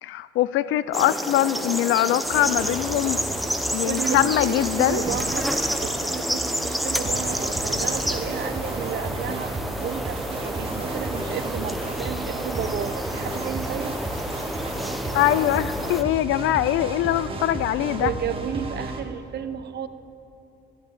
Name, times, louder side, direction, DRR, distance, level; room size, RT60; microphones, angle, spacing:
voice 1, 0.0-3.2 3.7-5.1 15.1-18.1, left 13 dB, 85° left, 17 dB, 0.5 m, -22 dB
sound 1, 0.9-16.0, equal, ahead, 0.8 m, -29 dB
sound 2, 2.2-19.0, right 2 dB, 25° right, 1.8 m, -34 dB
voice 2, 3.8-14.0 17.9-19.9, right 8 dB, 60° right, 12 dB, 0.8 m, -32 dB
14.5 x 8.5 x 8.2 m, 2.8 s
cardioid pair, 90°, 20 cm